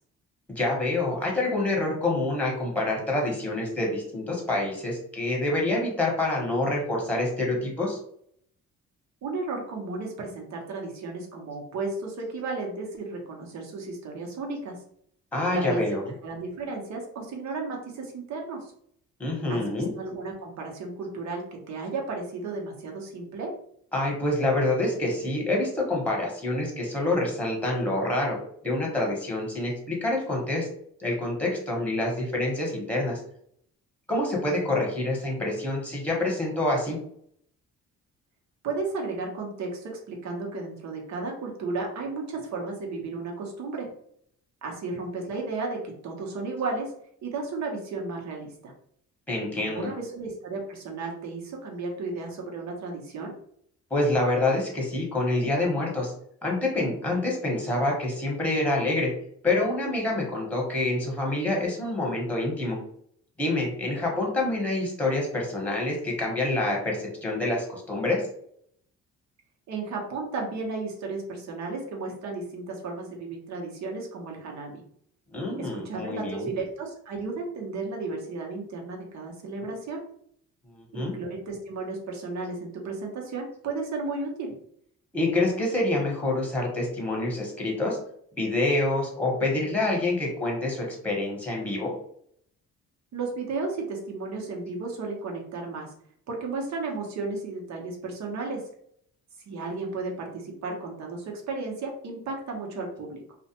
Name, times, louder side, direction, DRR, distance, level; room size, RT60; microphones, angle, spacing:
voice 1, 0.5-8.0 15.3-16.0 19.2-19.9 23.9-28.4 28.6-30.7 31.0-33.2 34.1-37.0 49.3-49.9 53.9-56.1 56.4-59.1 59.4-62.8 63.4-68.2 75.3-76.5 80.7-81.1 85.1-88.0 88.4-91.9, left 2 dB, 5° left, -2 dB, 1.0 m, -27 dB
voice 2, 9.2-14.8 15.5-16.0 16.2-18.7 19.5-23.5 38.6-43.9 44.6-46.9 47.2-48.7 49.6-53.4 69.7-74.8 75.6-80.0 80.9-84.5 93.1-95.9 96.3-98.7 99.5-103.2, right 3 dB, 65° right, 0 dB, 0.8 m, -34 dB
2.4 x 2.1 x 2.8 m, 0.66 s
cardioid pair, 90°, 30 cm